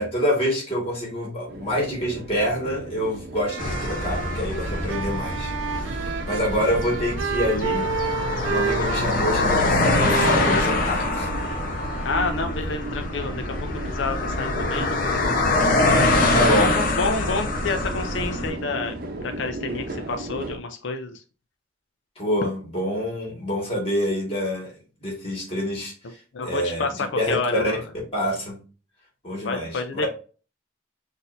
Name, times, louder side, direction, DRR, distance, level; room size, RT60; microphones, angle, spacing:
voice 1, 0.0-7.9 8.5-11.3 16.3-16.7 22.2-24.7 25.0-25.9 26.4-27.6 28.1-28.6 29.2-30.1, equal, 35° left, -1 dB, 1.8 m, -26 dB
sound 1, 1.5-20.6, right 1 dB, 55° right, 0.7 m, -38 dB
sound 2, 3.4-13.2, right 6 dB, 85° right, 0.4 m, -31 dB
sound 3, 3.6-18.5, left 2 dB, 50° left, 0.9 m, -24 dB
voice 2, 12.0-14.9 15.9-16.2 16.6-21.2 26.0-27.8 29.4-30.0, left 3 dB, 90° left, 6 dB, 0.5 m, -29 dB
5.9 x 2.7 x 2.6 m, 0.37 s
head